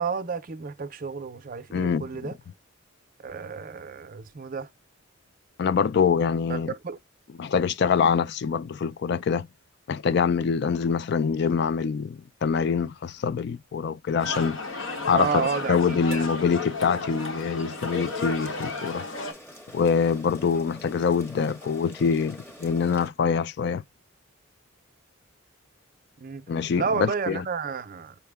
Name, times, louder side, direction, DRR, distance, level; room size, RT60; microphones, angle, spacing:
voice 1, 0.0-2.4 3.2-4.7 6.5-6.6 6.8-7.0 15.1-16.3 26.2-26.5 26.8-28.1, right 5 dB, 40° right, 0.5 m, -31 dB
voice 2, 1.7-2.1 5.6-6.7 7.4-9.5 9.9-14.6 15.1-15.3 15.7-19.0 19.7-23.8 26.5-27.4, left 6 dB, 50° left, 0.3 m, -25 dB
sound 1, 14.2-19.3, left 3 dB, 70° left, 1.0 m, -33 dB
sound 2, 17.7-23.1, left 1 dB, 10° left, 0.9 m, -47 dB
5.6 x 2.1 x 3.4 m
head